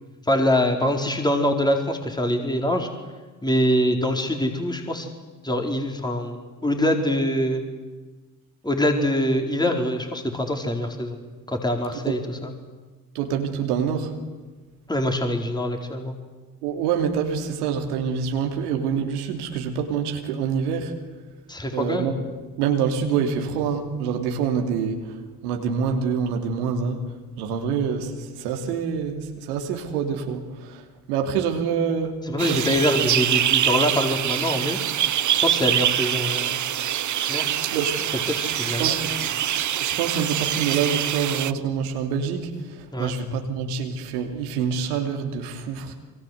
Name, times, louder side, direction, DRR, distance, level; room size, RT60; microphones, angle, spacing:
voice 1, 0.3-2.9 3.4-5.1 5.4-7.6 8.6-11.2 11.5-12.5 14.9-16.2 21.5-22.1 32.2-34.8 35.3-36.6 37.3-37.5 38.3-39.0 42.9-43.1, left 1 dB, 10° left, 3 dB, 4.5 m, -24 dB
voice 2, 13.1-14.1 16.6-20.9 21.7-22.2 22.6-25.2 25.4-27.0 27.4-30.8 31.1-32.6 37.6-38.0 38.8-39.3 39.6-45.9, right 6 dB, 80° right, 4 dB, 2.9 m, -26 dB
sound 1, 32.4-41.5, right 11 dB, 40° right, 1.0 m, -24 dB
27.0 x 24.5 x 8.1 m, 1.3 s
hypercardioid pair, 55°, 45 cm